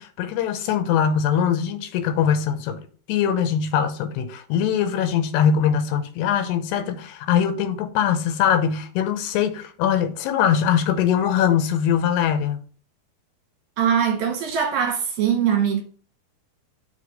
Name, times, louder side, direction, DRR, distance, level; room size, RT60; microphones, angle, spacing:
voice 1, 0.0-2.8 3.1-12.6, left 8 dB, 90° left, 2.8 m, -22 dB
voice 2, 13.8-15.8, right 8 dB, 70° right, 2.5 m, -22 dB
6.9 x 3.3 x 5.2 m
omnidirectional pair, 4.9 m